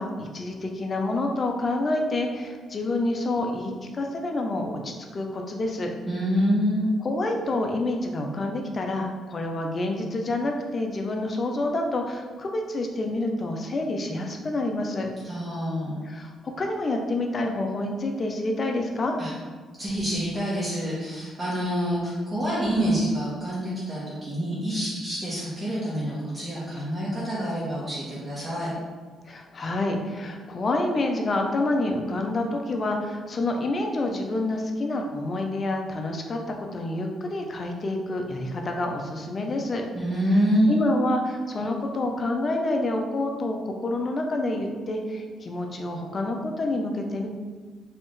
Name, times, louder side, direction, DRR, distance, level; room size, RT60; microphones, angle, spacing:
voice 1, 0.0-5.9 7.0-15.1 16.0-19.2 29.3-39.8 40.7-47.3, left 2 dB, 40° left, 3 dB, 0.6 m, -28 dB
voice 2, 6.1-6.9 15.2-16.0 19.2-19.3 19.8-28.7 39.9-40.9, equal, 20° right, -9 dB, 1.0 m, -26 dB
4.1 x 2.6 x 3.2 m, 1.5 s
cardioid pair, 90°, 0 cm